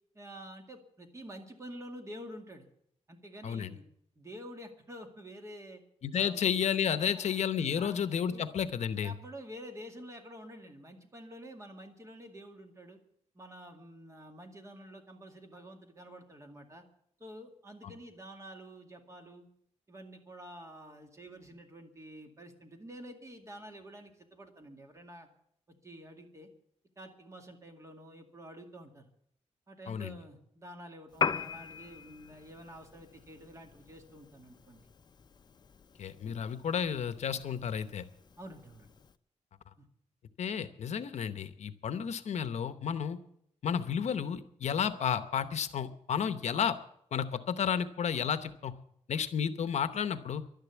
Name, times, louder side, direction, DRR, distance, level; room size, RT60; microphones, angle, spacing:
voice 1, 0.1-2.7 3.1-3.8 4.2-5.8 6.2-6.6 6.9-7.4 7.7-8.5 9.0-13.0 13.3-16.8 17.2-19.5 19.9-25.3 25.8-26.5 27.0-29.1 29.7-34.8 36.2-36.4 38.4-38.9 39.8-39.9, equal, 25° right, 4 dB, 2.1 m, -49 dB
voice 2, 3.4-3.7 6.0-9.1 17.8-17.9 29.9-30.2 36.0-38.0 40.4-43.2 43.6-46.8 47.1-48.7 49.1-50.4, left 8 dB, 65° left, 11 dB, 0.9 m, -32 dB
Piano, 31.1-39.2, left 6 dB, 35° left, 0.6 m, -41 dB
12.0 x 10.5 x 9.3 m, 0.71 s
wide cardioid pair, 145°, 12 cm